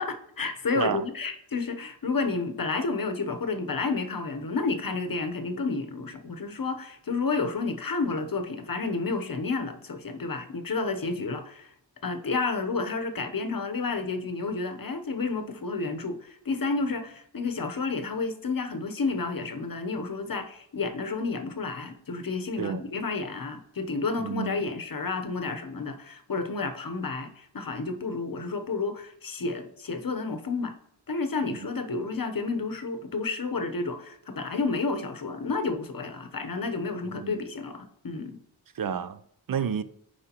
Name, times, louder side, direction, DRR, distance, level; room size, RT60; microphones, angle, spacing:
voice 1, 0.0-11.7 12.0-30.7 31.1-38.4, left 4 dB, 50° left, 0.8 m, -31 dB
voice 2, 24.2-24.6 31.5-31.6 37.1-37.4 38.8-39.2 39.5-39.8, right 7 dB, 50° right, 0.4 m, -30 dB
9.8 x 4.8 x 2.9 m
wide cardioid pair, 75°, 45 cm